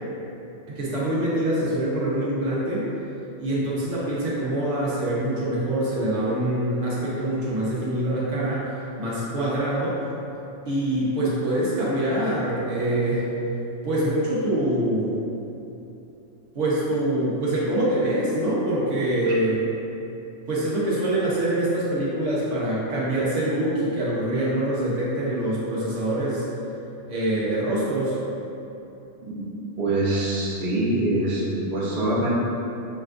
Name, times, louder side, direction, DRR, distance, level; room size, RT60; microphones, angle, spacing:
voice 1, 0.7-2.9 3.4-8.7 9.0-10.0 10.7-13.3 13.8-15.2 16.5-19.6 20.5-26.5 27.1-28.2, right 1 dB, 75° right, -7 dB, 1.2 m, -24 dB
voice 2, 29.8-32.3, right 1 dB, 45° right, -8 dB, 0.9 m, -24 dB
6.6 x 2.3 x 2.4 m, 2.9 s
omnidirectional pair, 1.3 m